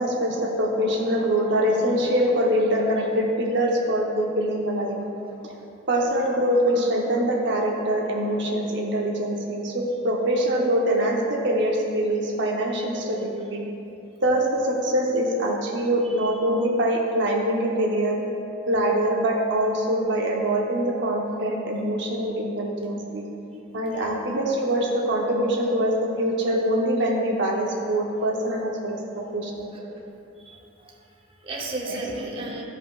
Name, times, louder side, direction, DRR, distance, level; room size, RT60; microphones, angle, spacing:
voice 1, 0.0-5.0 5.4-5.5 5.9-13.7 14.2-18.2 18.7-23.3 23.7-29.7 31.8-32.0, right 1 dB, 55° right, -1 dB, 0.8 m, -24 dB
voice 2, 30.4-32.6, right 2 dB, 25° right, -2 dB, 0.9 m, -35 dB
15.0 x 5.3 x 2.4 m, 2.8 s
head